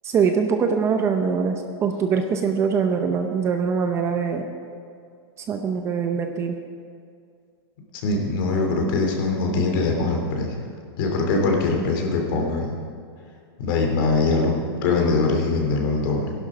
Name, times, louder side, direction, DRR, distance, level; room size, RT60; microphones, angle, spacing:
voice 1, 0.0-4.5 5.4-6.6, right 6 dB, 20° right, 5 dB, 0.7 m, -23 dB
voice 2, 8.0-10.6 11.0-12.8 13.6-16.3, left 3 dB, 50° left, 1 dB, 2.9 m, -22 dB
16.0 x 11.5 x 5.0 m, 2.3 s
supercardioid pair, 160°, 14 cm